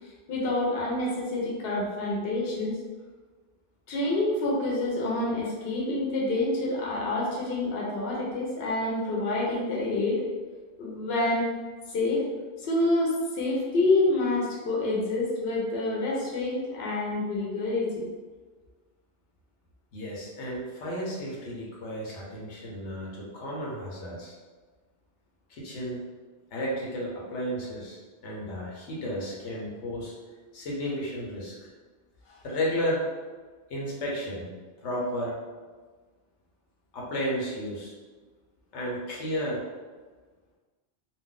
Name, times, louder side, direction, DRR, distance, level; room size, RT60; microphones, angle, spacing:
voice 1, 0.0-2.8 3.9-10.2 10.8-11.5 11.9-12.2 12.6-18.1, left 2 dB, 65° left, -4 dB, 0.9 m, -27 dB
voice 2, 19.9-24.3 25.5-26.0 26.5-30.1 30.5-31.6 32.4-33.0 33.7-34.5 34.8-35.4 36.9-37.9 38.7-39.6, equal, 85° left, -4 dB, 1.1 m, -33 dB
2.6 x 2.0 x 3.7 m, 1.4 s
omnidirectional pair, 1.1 m